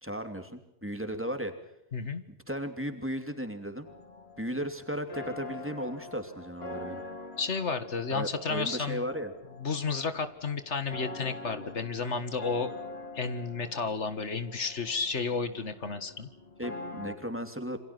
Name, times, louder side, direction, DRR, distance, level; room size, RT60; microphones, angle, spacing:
voice 1, 0.0-1.5 2.3-3.9 4.4-7.0 8.1-9.3 16.6-17.8, equal, 10° right, 6 dB, 3.0 m, -35 dB
voice 2, 1.9-2.2 7.4-9.0 9.6-12.7 13.1-16.3, left 4 dB, 90° left, 10 dB, 2.1 m, -32 dB
sound 1, 3.8-17.2, left 3 dB, 60° left, 2.7 m, -45 dB
28.5 x 26.0 x 6.1 m, 0.77 s
omnidirectional pair, 1.2 m